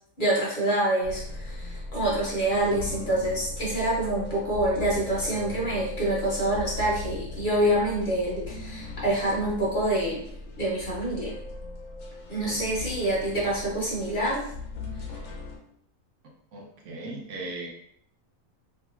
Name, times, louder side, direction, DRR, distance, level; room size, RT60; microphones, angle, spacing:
voice 1, 0.2-10.2 10.6-11.3 12.3-14.4, right 1 dB, 45° left, -6 dB, 0.9 m, -26 dB
sound 1, 1.0-15.6, left 3 dB, 75° left, 1.1 m, -38 dB
voice 2, 16.5-17.7, right 2 dB, 70° right, 0 dB, 0.9 m, -37 dB
2.9 x 2.9 x 2.3 m, 0.69 s
omnidirectional pair, 1.4 m